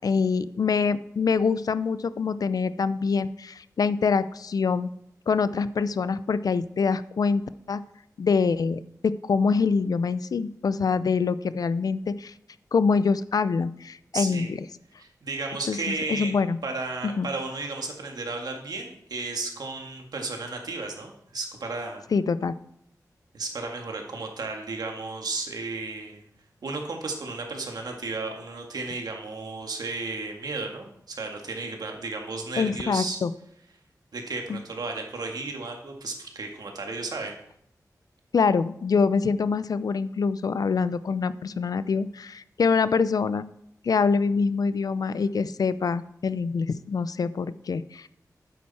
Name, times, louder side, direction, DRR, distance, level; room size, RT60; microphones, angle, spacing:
voice 1, 0.0-4.9 5.3-7.4 7.7-7.8 8.2-12.3 12.7-14.6 15.7-16.6 17.2-17.3 22.1-22.5 32.6-33.3 34.5-34.6 38.3-43.4 43.8-48.1, left 5 dB, 70° left, 15 dB, 0.5 m, -25 dB
voice 2, 14.1-14.5 15.0-16.3 16.6-22.0 23.3-26.2 26.6-33.2 34.1-37.3, right 3 dB, 80° right, 2 dB, 2.0 m, -33 dB
12.0 x 9.3 x 4.3 m, 0.75 s
wide cardioid pair, 120°, 7 cm